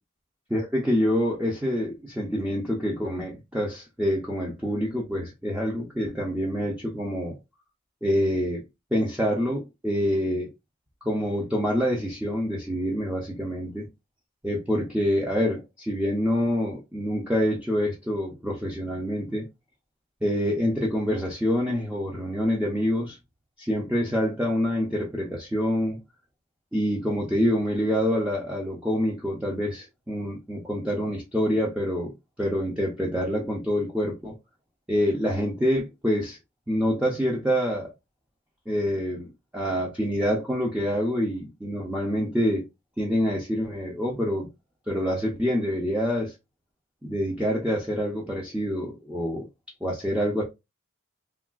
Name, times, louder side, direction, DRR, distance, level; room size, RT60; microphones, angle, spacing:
voice 1, 0.5-7.4 8.0-8.6 8.9-10.5 11.0-13.9 14.4-19.5 20.2-23.2 23.6-26.0 26.7-32.1 32.4-34.3 34.9-36.4 36.7-37.9 38.7-42.6 43.0-44.5 44.9-46.3 47.0-49.5 49.8-50.4, equal, 5° right, 0.5 m, -26 dB
3.4 x 2.3 x 2.3 m
head